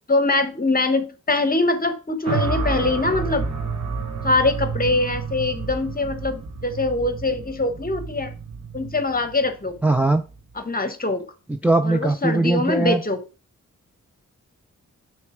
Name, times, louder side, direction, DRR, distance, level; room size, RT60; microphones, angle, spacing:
voice 1, 0.1-3.5 4.2-8.3 8.7-9.7 10.6-11.2 11.8-13.2, left 2 dB, 30° left, 1.0 m, -23 dB
sound 1, 2.2-10.5, right 5 dB, 60° right, 1.2 m, -30 dB
voice 2, 9.8-10.2 11.5-13.0, right 2 dB, 5° right, 0.4 m, -20 dB
6.3 x 3.3 x 4.8 m
wide cardioid pair, 85°, 31 cm